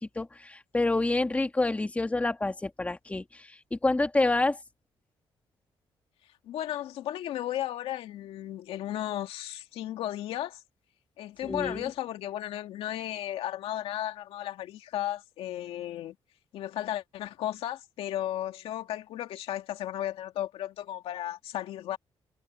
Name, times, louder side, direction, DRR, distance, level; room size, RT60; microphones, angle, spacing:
voice 1, 0.0-4.6 11.4-11.9, left 2 dB, 15° left, 2.1 m, -28 dB
voice 2, 6.5-10.6 11.2-16.2 16.5-22.0, left 12 dB, 90° left, 2.3 m, -34 dB
cardioid pair, 110°, 9 cm